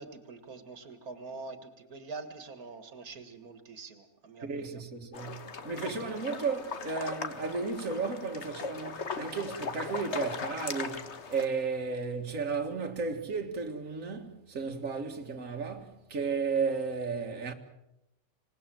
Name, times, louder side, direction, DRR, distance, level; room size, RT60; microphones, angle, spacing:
voice 1, 0.0-4.8, right 3 dB, 85° right, 2.1 m, -45 dB
voice 2, 4.4-17.5, right 5 dB, 65° right, 2.1 m, -34 dB
sound 1, 5.1-11.5, left 4 dB, 50° left, 1.6 m, -38 dB
26.5 x 18.5 x 7.6 m
omnidirectional pair, 1.5 m